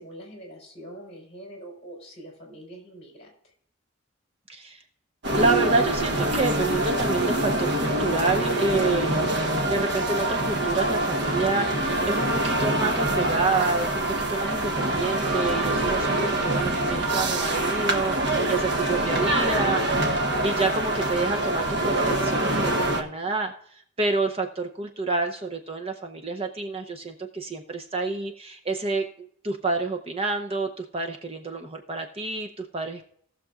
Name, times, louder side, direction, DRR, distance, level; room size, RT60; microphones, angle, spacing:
voice 1, 0.0-3.3 19.3-19.8, equal, 30° left, 1 dB, 3.6 m, -43 dB
voice 2, 4.5-4.8 5.3-14.0 14.3-19.9 20.4-33.1, right 3 dB, 30° right, 4 dB, 0.7 m, -28 dB
sound 1, 5.2-23.0, right 1 dB, 55° right, 1.1 m, -25 dB
18.5 x 6.7 x 2.4 m, 0.64 s
head